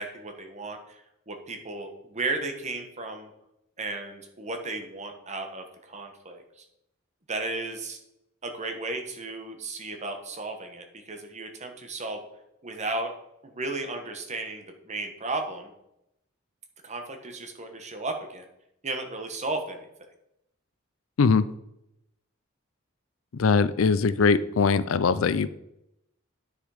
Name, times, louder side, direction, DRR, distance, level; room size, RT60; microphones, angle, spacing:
voice 1, 0.0-3.3 3.8-6.6 7.3-8.0 8.4-12.2 12.6-13.1 13.4-15.7 16.8-18.4 18.8-19.9, right 2 dB, 35° right, 4 dB, 1.4 m, -34 dB
voice 2, 23.4-25.5, left 5 dB, 70° left, 16 dB, 0.5 m, -21 dB
9.9 x 6.4 x 5.0 m, 0.83 s
head